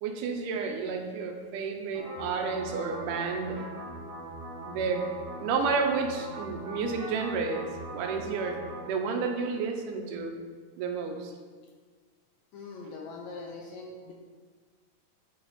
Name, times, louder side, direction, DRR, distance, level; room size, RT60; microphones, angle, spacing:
voice 1, 0.0-3.6 4.7-5.1 5.4-8.6 8.9-10.4 10.8-11.3, right 5 dB, 80° right, 4 dB, 2.2 m, -31 dB
sound 1, 1.9-8.8, right 1 dB, 65° right, 1.3 m, -41 dB
voice 2, 12.5-14.1, left 3 dB, 80° left, 0 dB, 1.7 m, -42 dB
7.8 x 3.4 x 4.0 m, 1.5 s
omnidirectional pair, 3.7 m